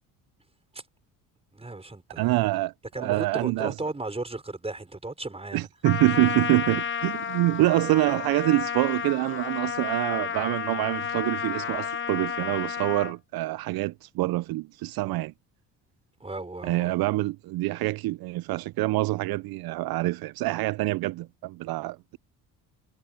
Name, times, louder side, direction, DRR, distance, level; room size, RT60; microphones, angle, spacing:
voice 1, 1.5-2.4 2.9-5.7 16.2-17.2, right 2 dB, 15° right, 4.9 m, -36 dB
voice 2, 2.2-3.7 5.5-15.3 16.6-22.2, right 19 dB, 65° right, 0.5 m, -26 dB
Trumpet, 5.8-13.1, left 7 dB, 30° left, 0.9 m, -31 dB
cardioid pair, 90°, 39 cm